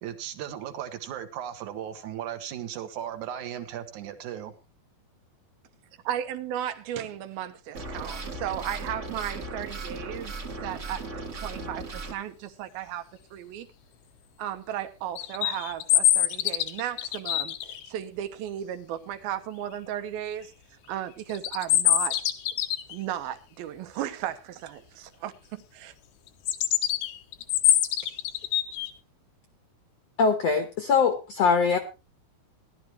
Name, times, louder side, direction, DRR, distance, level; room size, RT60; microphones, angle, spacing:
voice 1, 0.0-4.5, right 10 dB, 65° right, 2.5 m, -36 dB
voice 2, 6.1-13.1 13.3-13.7 14.4-20.5 20.9-22.2 22.9-25.9, right 11 dB, 80° right, 2.8 m, -35 dB
sound 1, 7.7-12.1, right 3 dB, 40° right, 1.0 m, -37 dB
sound 2, 15.2-17.9 21.3-22.9 26.5-28.9, left 12 dB, 85° left, 2.9 m, -24 dB
voice 3, 30.2-31.8, left 5 dB, 65° left, 1.6 m, -22 dB
17.5 x 12.0 x 3.1 m
omnidirectional pair, 4.3 m